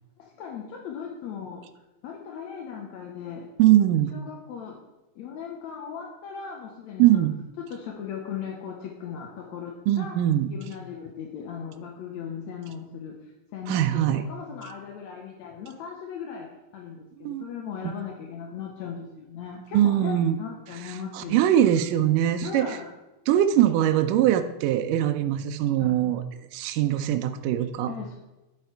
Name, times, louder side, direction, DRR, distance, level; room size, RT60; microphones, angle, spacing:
voice 1, 0.2-1.7 2.0-3.8 4.1-4.8 5.2-7.3 7.7-10.2 10.5-13.2 13.5-21.5 22.4-22.9 25.8-25.9 27.9-28.1, left 7 dB, 70° left, 1 dB, 1.8 m, -38 dB
voice 2, 3.6-4.2 7.0-7.3 9.9-10.5 13.7-14.3 17.2-17.5 17.8-17.9 19.7-20.4 21.1-22.7 23.3-26.2 26.5-27.9, right 12 dB, 80° right, 7 dB, 2.0 m, -22 dB
11.0 x 8.0 x 4.5 m, 1.0 s
omnidirectional pair, 4.3 m